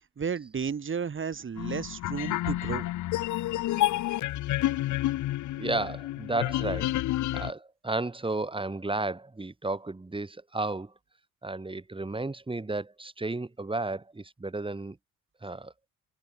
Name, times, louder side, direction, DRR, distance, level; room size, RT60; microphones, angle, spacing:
voice 1, 0.2-2.9, right 6 dB, 40° right, 4.5 m, -33 dB
sound 1, 1.6-7.5, left 15 dB, 75° left, 0.9 m, -29 dB
voice 2, 5.6-6.9 7.3-10.9 11.4-15.0 15.4-15.7, right 2 dB, 15° right, 3.9 m, -33 dB
cardioid pair, 90°, 30 cm